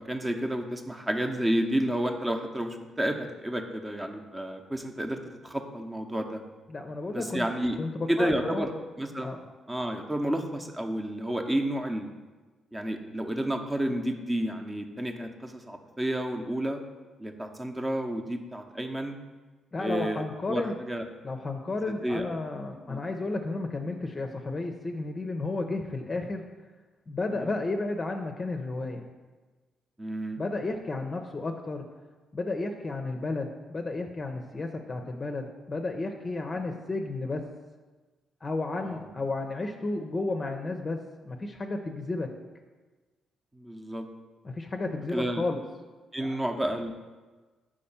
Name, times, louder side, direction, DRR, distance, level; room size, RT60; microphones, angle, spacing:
voice 1, 0.0-6.4 7.1-7.8 8.1-8.7 9.0-9.4 9.7-12.1 12.7-16.8 17.2-19.2 19.8-21.0 22.0-22.3 22.9-23.0 27.3-27.5 30.0-30.4 38.8-39.1 43.5-44.1 45.1-45.4 46.1-47.0, right 1 dB, 20° right, 4 dB, 0.8 m, -31 dB
voice 2, 6.7-7.5 7.8-8.7 9.2-9.4 19.7-20.8 21.2-26.4 27.1-29.1 30.4-31.8 32.3-37.4 38.4-42.3 44.4-45.6 46.2-46.3, left 2 dB, 35° left, 4 dB, 0.6 m, -32 dB
4.9 x 4.2 x 5.6 m, 1.3 s
hypercardioid pair, 50°, 0 cm